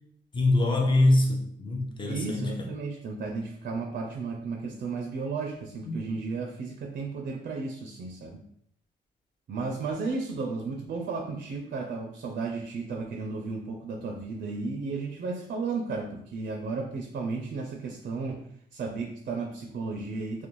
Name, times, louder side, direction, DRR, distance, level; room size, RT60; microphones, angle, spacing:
voice 1, 0.3-2.5 5.9-6.0, left 2 dB, 25° left, 0 dB, 0.6 m, -24 dB
voice 2, 2.1-8.4 9.5-18.5 18.7-20.5, right 4 dB, 50° right, 2 dB, 0.4 m, -34 dB
2.5 x 2.1 x 3.0 m, 0.70 s
cardioid pair, 90°, 20 cm